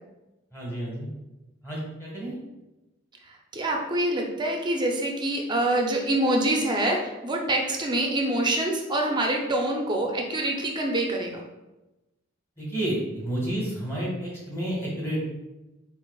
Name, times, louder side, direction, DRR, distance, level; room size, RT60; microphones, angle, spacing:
voice 1, 0.5-1.1 1.6-2.3 12.6-15.2, right 1 dB, 15° left, -5 dB, 1.4 m, -30 dB
voice 2, 3.2-11.4, right 1 dB, 20° right, 1 dB, 0.6 m, -26 dB
4.7 x 4.0 x 2.3 m, 1.0 s
head